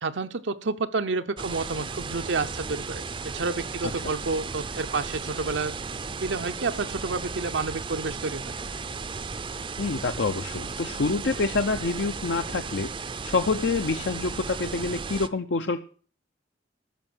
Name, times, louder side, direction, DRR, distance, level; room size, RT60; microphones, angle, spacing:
voice 1, 0.0-3.0 3.3-5.7 6.2-8.5, right 3 dB, 75° right, 8 dB, 0.8 m, -29 dB
sound 1, 1.4-15.3, right 4 dB, 25° right, 0.5 m, -35 dB
voice 2, 9.8-12.9 13.2-15.8, left 3 dB, 70° left, 7 dB, 0.7 m, -27 dB
13.5 x 6.4 x 7.8 m, 0.42 s
head